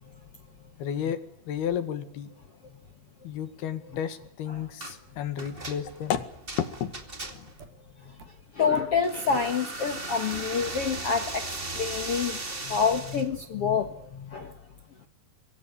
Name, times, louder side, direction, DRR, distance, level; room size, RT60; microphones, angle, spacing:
voice 1, 0.8-1.2 1.5-2.3 3.2-6.2 6.6-6.9 7.3-7.5, left 9 dB, 75° left, 11 dB, 3.9 m, -32 dB
sound 1, 4.8-5.0 5.4-7.6 9.0-13.3, right 2 dB, 20° right, 1.9 m, -37 dB
sound 2, 7.6-7.7 8.2-8.3 8.8-8.9 9.9-10.0 10.3-11.0 11.5-11.6, right 6 dB, 70° right, 4.6 m, -46 dB
voice 2, 8.5-11.4 11.7-14.5, left 6 dB, 50° left, 7 dB, 1.9 m, -27 dB
25.0 x 23.5 x 9.6 m, 0.66 s
omnidirectional pair, 4.6 m